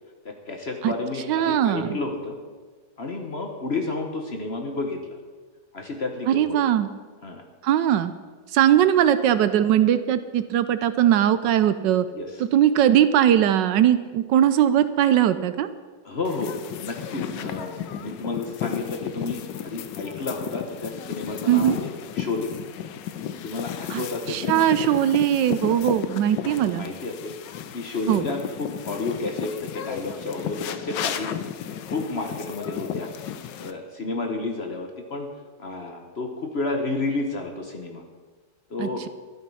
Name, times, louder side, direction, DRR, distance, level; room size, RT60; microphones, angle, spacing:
voice 1, 0.2-2.4 3.0-5.2 5.7-6.6 7.2-7.4 11.0-11.1 12.1-12.4 16.0-16.5 16.8-22.5 23.4-24.7 25.6-25.8 26.4-27.3 27.7-31.3 31.9-33.1 33.6-35.3 35.6-38.0 38.7-39.0, left 3 dB, 40° left, 3 dB, 1.2 m, -31 dB
voice 2, 1.3-2.0 6.3-6.9 7.6-8.1 8.5-12.0 12.5-15.7 21.5-21.8 23.9-26.9 28.1-28.2 38.8-39.1, right 10 dB, 75° right, 13 dB, 1.2 m, -20 dB
sound 1, 16.3-33.7, left 9 dB, 75° left, 1.3 m, -34 dB
12.5 x 10.5 x 5.5 m, 1.4 s
omnidirectional pair, 2.0 m